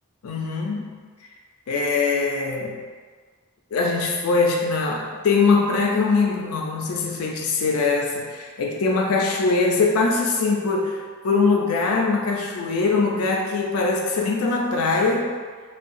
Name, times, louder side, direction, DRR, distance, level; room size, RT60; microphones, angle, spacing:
voice 1, 0.2-0.9 1.7-2.8 3.7-15.4, left 4 dB, 80° left, 0 dB, 0.4 m, -22 dB
2.7 x 2.2 x 2.5 m, 1.5 s
head